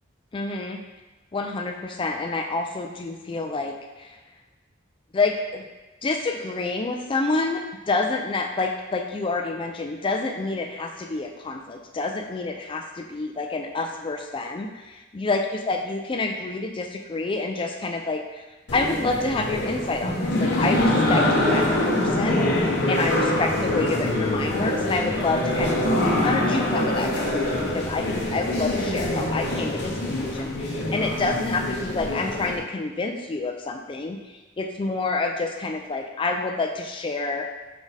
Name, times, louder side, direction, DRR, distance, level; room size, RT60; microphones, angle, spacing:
voice 1, 0.3-0.8 1.3-4.1 5.1-5.6 6.0-15.4 15.7-18.4 18.7-34.2 34.6-37.5, left 3 dB, 25° left, 3 dB, 0.3 m, -28 dB
sound 1, 18.7-32.6, left 1 dB, 55° left, 0.7 m, -24 dB
4.7 x 4.0 x 2.7 m, 1.1 s
head